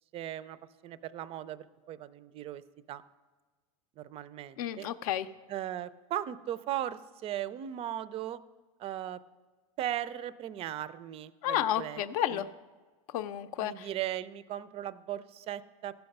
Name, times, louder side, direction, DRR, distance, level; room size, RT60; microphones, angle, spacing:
voice 1, 0.1-0.6 0.8-2.6 2.9-3.0 4.0-4.9 5.5-8.4 8.8-9.2 9.8-12.0 12.3-12.4 13.6-15.9, right 12 dB, 30° right, 16 dB, 0.4 m, -37 dB
voice 2, 4.6-5.3 11.4-12.5 13.1-13.9, left 11 dB, 70° left, 12 dB, 0.6 m, -31 dB
14.5 x 5.8 x 5.3 m, 1.3 s
supercardioid pair, 125°, 19 cm